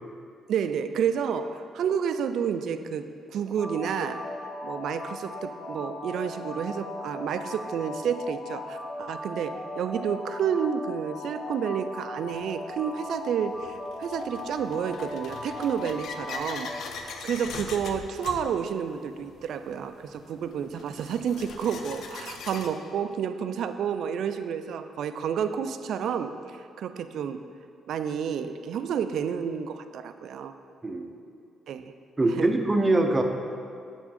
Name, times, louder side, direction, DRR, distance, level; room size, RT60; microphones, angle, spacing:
voice 1, 0.5-4.3 4.6-16.7 17.0-27.4 27.9-30.5 31.7-31.8 32.3-32.5, right 7 dB, 70° right, 10 dB, 0.3 m, -30 dB
sound 1, 3.5-16.8, left 2 dB, 20° left, 1.4 m, -38 dB
sound 2, 12.3-12.4 13.2-22.7, left 5 dB, 75° left, 0.5 m, -41 dB
voice 2, 32.2-33.2, right 2 dB, 20° right, 4 dB, 0.6 m, -23 dB
7.1 x 4.4 x 4.2 m, 2.3 s
cardioid pair, 90°, 0 cm